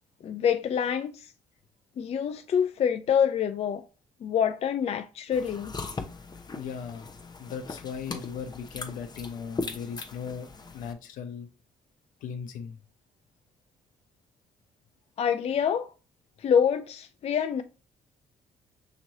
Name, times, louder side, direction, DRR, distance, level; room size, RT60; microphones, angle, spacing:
voice 1, 0.2-1.3 2.0-3.9 4.2-5.7 15.2-15.9 16.4-17.6, left 8 dB, 50° left, 0.4 m, -26 dB
sound 1, 5.3-10.9, left 3 dB, 30° left, 0.8 m, -39 dB
voice 2, 6.5-7.1 7.4-10.5 10.7-11.5 12.2-12.8, left 6 dB, 80° left, 0.8 m, -37 dB
5.9 x 3.0 x 2.7 m
supercardioid pair, 60°, 14 cm